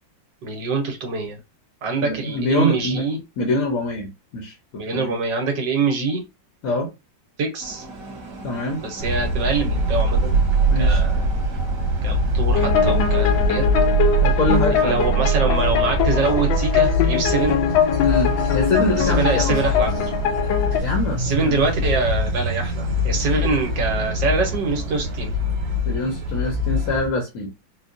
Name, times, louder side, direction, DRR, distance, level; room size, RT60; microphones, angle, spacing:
voice 1, 0.4-1.4 1.8-3.2 4.7-6.2 7.4-7.8 8.8-10.4 10.8-11.3 12.0-13.7 14.7-17.6 19.0-19.9 20.7-20.8 21.2-25.3, right 4 dB, 70° right, 1.5 m, -24 dB
voice 2, 2.0-3.0 3.4-5.2 6.6-6.9 8.4-8.8 10.7-11.0 14.2-15.0 18.0-19.5 20.8-21.6 25.8-27.5, left 1 dB, 60° left, 1.0 m, -24 dB
sound 1, 7.6-17.2, right 1 dB, 55° right, 1.2 m, -40 dB
sound 2, 9.0-27.1, equal, 90° right, 1.6 m, -22 dB
sound 3, 12.5-20.8, left 7 dB, 85° left, 1.4 m, -22 dB
4.3 x 2.2 x 2.5 m
omnidirectional pair, 2.0 m